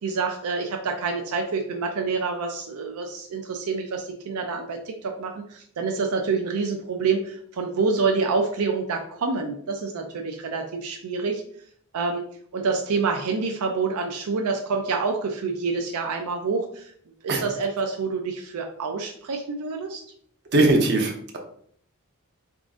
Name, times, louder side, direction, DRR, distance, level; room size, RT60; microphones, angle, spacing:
voice 1, 0.0-11.4 11.9-12.2 12.5-16.9 17.2-20.0, right 4 dB, 85° right, 3 dB, 0.4 m, -27 dB
voice 2, 20.5-21.4, right 2 dB, 50° right, 1 dB, 0.8 m, -20 dB
3.7 x 3.6 x 2.5 m, 0.63 s
head